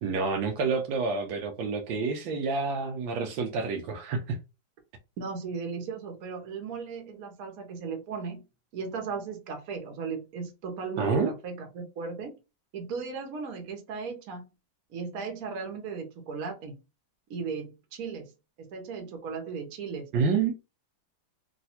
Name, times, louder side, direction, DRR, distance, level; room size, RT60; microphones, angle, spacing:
voice 1, 0.0-4.4 11.0-11.3 20.1-20.5, right 4 dB, 75° right, 1.3 m, -28 dB
voice 2, 5.2-8.4 8.7-12.3 12.7-14.4 14.9-16.8 17.3-18.3 18.6-20.1, right 5 dB, 55° right, 1.2 m, -36 dB
3.2 x 2.8 x 2.8 m
omnidirectional pair, 2.2 m